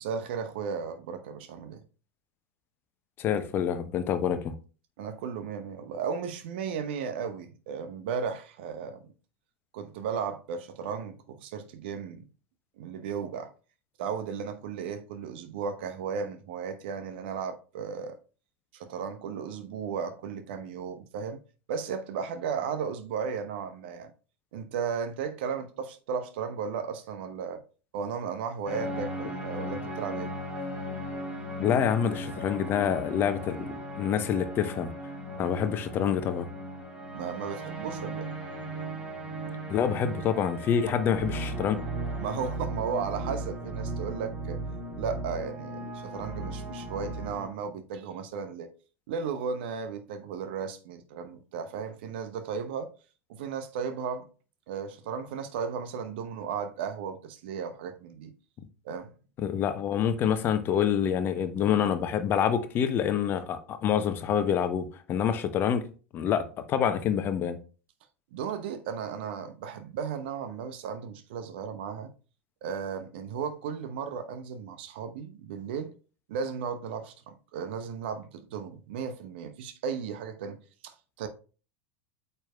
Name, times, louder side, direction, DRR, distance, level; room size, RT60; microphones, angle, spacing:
voice 1, 0.0-1.8 5.0-9.1 9.7-12.2 12.8-13.5 14.0-18.2 18.7-21.4 21.7-24.1 24.5-27.6 27.9-30.3 37.1-38.3 40.9-41.0 42.2-44.6 45.0-48.7 49.1-52.9 53.3-54.3 54.7-58.3 58.8-59.1 68.3-72.1 72.6-75.9 76.3-80.6 80.8-81.3, right 6 dB, 50° right, 0.9 m, -35 dB
voice 2, 3.2-4.5 31.6-33.7 34.0-34.9 35.4-36.5 39.7-41.8 59.4-65.8 66.1-67.6, left 8 dB, 30° left, 0.9 m, -27 dB
sound 1, 28.7-47.5, right 1 dB, 20° right, 3.5 m, -37 dB
9.0 x 6.9 x 2.3 m
figure-of-eight pair, 90°, 7 cm